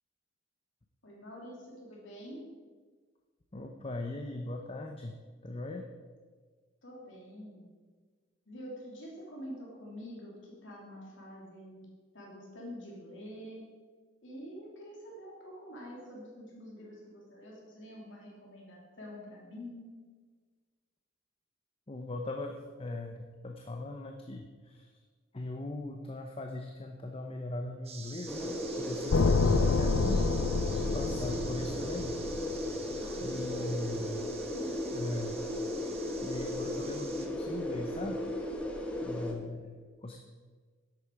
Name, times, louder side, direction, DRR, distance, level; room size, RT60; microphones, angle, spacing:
voice 1, 1.0-2.5 6.8-7.6 8.5-11.9 12.1-13.6 14.2-19.9 33.0-34.0 34.5-34.9, equal, 65° left, -3 dB, 3.2 m, -47 dB
voice 2, 3.5-5.1 5.4-5.9 21.9-23.2 23.4-24.9 25.3-30.7 30.9-32.2 33.2-34.2 34.9-35.3 35.8-36.0 36.2-38.3 39.0-40.2, left 2 dB, 30° left, 3 dB, 0.6 m, -40 dB
sound 1, 27.8-37.3, right 5 dB, 30° right, 1.1 m, -48 dB
sound 2, 28.3-39.3, left 1 dB, 5° left, 1.1 m, -36 dB
sound 3, 29.1-33.2, left 4 dB, 85° left, 0.5 m, -28 dB
11.0 x 8.5 x 4.7 m, 1.5 s
head